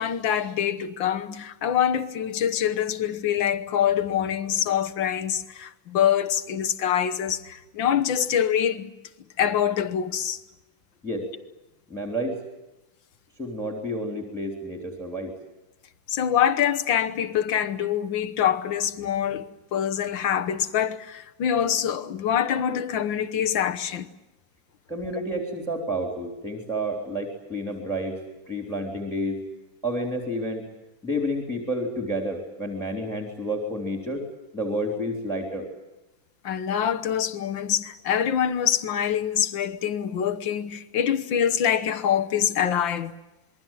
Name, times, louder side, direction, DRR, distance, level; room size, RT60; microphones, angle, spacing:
voice 1, 0.0-8.9 9.4-10.4 16.1-19.5 19.7-24.1 36.4-43.1, left 9 dB, 75° left, 1.9 m, -25 dB
voice 2, 11.9-12.4 13.4-15.3 24.9-28.2 28.5-29.4 29.8-30.7 31.0-34.2 34.5-35.7, equal, ahead, 3.3 m, -30 dB
27.0 x 22.0 x 7.5 m
omnidirectional pair, 2.1 m